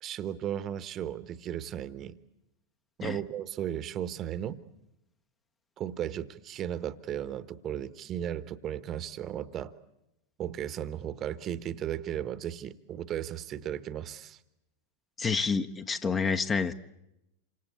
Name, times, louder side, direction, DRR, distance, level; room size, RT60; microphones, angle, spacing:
voice 1, 0.0-2.2 3.0-4.6 5.8-9.7 10.4-14.4, right 10 dB, 30° right, 15 dB, 1.2 m, -35 dB
voice 2, 15.2-16.7, left 5 dB, 20° left, 10 dB, 1.0 m, -28 dB
28.0 x 26.0 x 8.2 m, 0.88 s
figure-of-eight pair, 90°, 0 cm